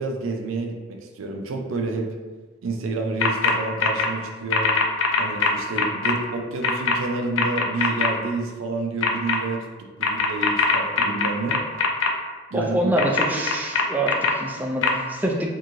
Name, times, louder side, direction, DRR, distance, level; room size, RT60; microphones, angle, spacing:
voice 1, 0.0-2.1 2.6-4.7 5.2-9.6 10.0-11.6 12.5-12.9, right 3 dB, 90° right, 2 dB, 0.4 m, -29 dB
sound 1, 3.2-3.5 3.8-4.1 4.5-6.1 6.6-6.9 7.4-8.1 9.0-9.4 10.0-12.1 13.0-14.3 14.8-14.9, left 5 dB, 70° left, 0.4 m, -21 dB
voice 2, 12.5-15.5, right 1 dB, 10° right, -1 dB, 0.3 m, -25 dB
3.0 x 2.6 x 2.5 m, 1.3 s
head